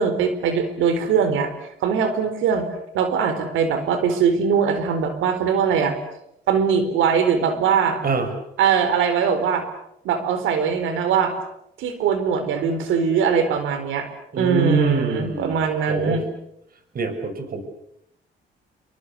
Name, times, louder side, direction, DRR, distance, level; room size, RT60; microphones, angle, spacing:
voice 1, 0.0-1.5 1.8-2.7 2.9-5.9 6.5-8.0 8.6-9.6 10.0-11.3 11.8-14.1 14.4-16.2, right 6 dB, 90° right, 9 dB, 4.3 m, -21 dB
voice 2, 14.3-15.6 15.9-16.2 16.9-17.6, right 5 dB, 50° right, 8 dB, 6.5 m, -24 dB
28.0 x 25.0 x 7.0 m, 0.78 s
cardioid pair, 90°, 20 cm